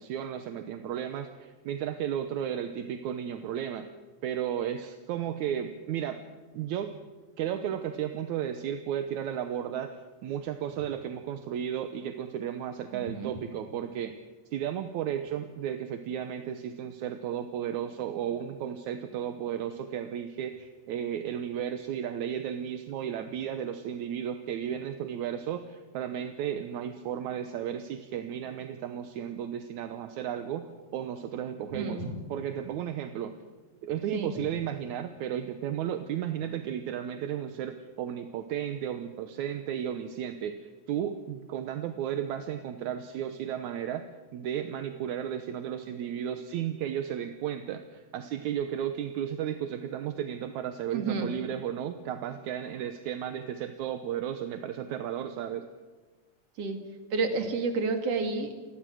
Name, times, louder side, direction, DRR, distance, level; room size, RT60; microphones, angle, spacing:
voice 1, 0.0-3.9 4.2-6.2 6.5-6.9 7.4-10.0 10.2-14.2 14.5-32.0 32.3-33.3 33.8-44.1 44.3-55.7, right 9 dB, 75° right, 8 dB, 2.3 m, -34 dB
voice 2, 12.9-13.3 31.7-32.2 34.1-34.3 50.9-51.3 56.6-56.8 57.1-58.5, right 4 dB, 55° right, 5 dB, 3.3 m, -30 dB
27.5 x 20.5 x 6.4 m, 1.3 s
omnidirectional pair, 3.5 m